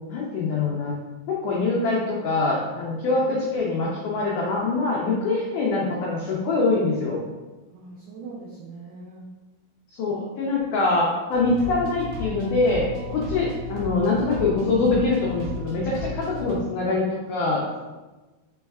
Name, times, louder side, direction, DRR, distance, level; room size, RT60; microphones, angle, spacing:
voice 1, 0.1-0.9 1.3-7.2 9.9-17.8, left 3 dB, 90° left, -4 dB, 1.7 m, -24 dB
voice 2, 2.9-3.3 7.7-9.3, right 4 dB, 85° right, -4 dB, 1.8 m, -41 dB
sound 1, 11.3-16.5, equal, 70° right, 1.9 m, -34 dB
5.4 x 4.3 x 2.3 m, 1.2 s
omnidirectional pair, 4.5 m